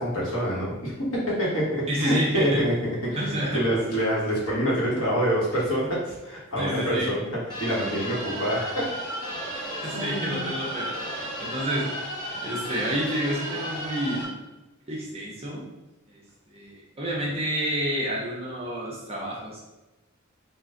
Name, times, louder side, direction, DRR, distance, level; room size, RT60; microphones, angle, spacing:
voice 1, 0.0-2.7 3.0-7.2 7.6-8.9 9.5-10.5, equal, 85° left, -6 dB, 1.4 m, -26 dB
voice 2, 1.9-2.6 3.2-3.6 6.6-7.1 9.8-11.9 12.4-14.3 14.9-15.6 16.1-16.2 16.5-19.6, equal, 30° right, -4 dB, 0.7 m, -29 dB
sound 1, 7.5-14.2, equal, 20° left, 1.1 m, -34 dB
3.7 x 2.5 x 3.9 m, 1.0 s
head